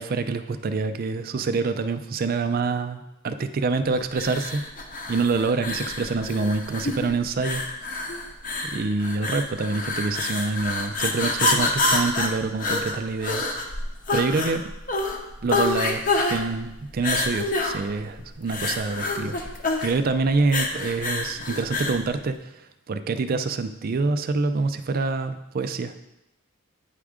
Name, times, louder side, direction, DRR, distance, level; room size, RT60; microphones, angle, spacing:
voice 1, 0.0-3.3 3.6-4.6 5.1-7.6 8.6-13.8 14.1-14.7 15.4-16.0 16.3-19.4 19.8-26.0, right 4 dB, 45° right, 9 dB, 0.4 m, -26 dB
sound 1, 4.1-22.0, left 2 dB, 40° left, 0.8 m, -27 dB
9.0 x 3.6 x 4.9 m, 0.91 s
head